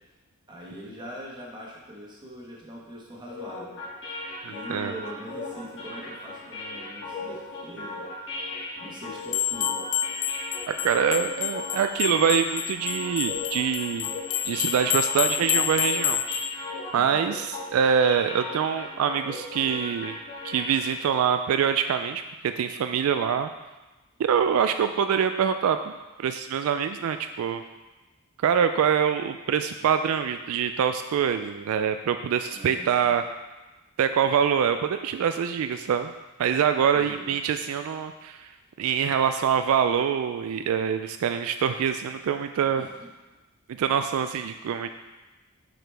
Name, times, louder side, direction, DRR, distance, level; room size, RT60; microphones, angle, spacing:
voice 1, 0.5-3.8 4.4-8.4 8.8-9.8 32.5-33.1 36.9-37.3 42.7-43.1 43.8-44.0, equal, 20° right, -3 dB, 1.2 m, -42 dB
sound 1, 3.3-21.1, left 2 dB, 55° left, 2.1 m, -38 dB
voice 2, 4.4-4.9 10.7-14.1 14.4-16.2 16.9-20.2 20.4-23.5 24.2-25.9 26.2-27.6 28.4-33.2 34.0-36.1 36.4-38.5 38.8-42.9 43.8-44.9, right 7 dB, 75° right, 8 dB, 0.3 m, -25 dB
sound 2, 9.3-16.5, left 12 dB, 80° left, 0.4 m, -29 dB
7.8 x 4.9 x 3.3 m, 1.1 s
head